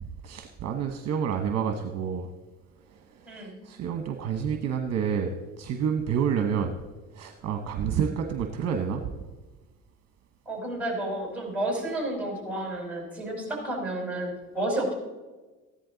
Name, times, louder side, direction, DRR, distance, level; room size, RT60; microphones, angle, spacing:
voice 1, 0.0-2.3 2.9-6.7 7.1-9.1, right 7 dB, 50° right, 5 dB, 1.1 m, -29 dB
voice 2, 10.5-14.9, right 1 dB, 5° right, 0 dB, 4.9 m, -31 dB
14.5 x 11.0 x 4.0 m, 1.2 s
cardioid pair, 100°, 32 cm